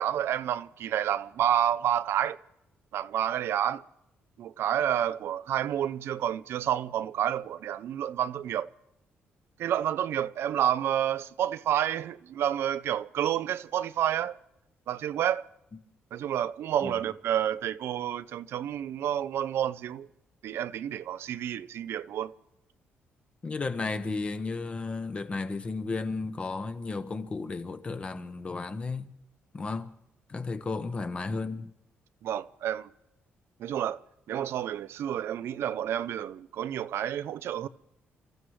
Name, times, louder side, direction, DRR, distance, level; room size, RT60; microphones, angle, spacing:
voice 1, 0.0-2.4 2.9-3.8 4.4-8.7 9.6-14.3 14.9-15.4 16.1-20.1 20.4-22.3 32.2-32.9 33.6-34.0 34.3-37.7, right 10 dB, 70° right, 0.5 m, -29 dB
voice 2, 23.4-29.1 29.5-29.9 30.3-31.7, left 3 dB, 25° left, 0.9 m, -33 dB
29.5 x 14.5 x 3.2 m
cardioid pair, 150°, 4 cm